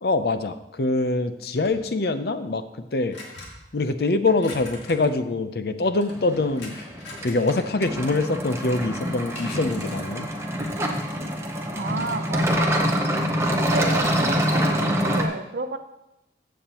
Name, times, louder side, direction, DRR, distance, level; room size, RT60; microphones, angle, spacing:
voice 1, 0.0-3.2 3.7-6.8 7.2-10.3, left 3 dB, 60° left, 10 dB, 0.6 m, -24 dB
sound 1, 1.6-1.9 3.1-3.7 4.3-5.2 5.8-8.2 8.6-8.7 9.3-10.1, left 2 dB, 85° left, 2.0 m, -42 dB
sound 2, 6.1-15.3, equal, 15° right, 0.8 m, -25 dB
voice 2, 11.7-13.0 13.5-15.8, right 3 dB, 65° right, 8 dB, 0.7 m, -32 dB
14.0 x 7.2 x 3.0 m, 0.89 s
head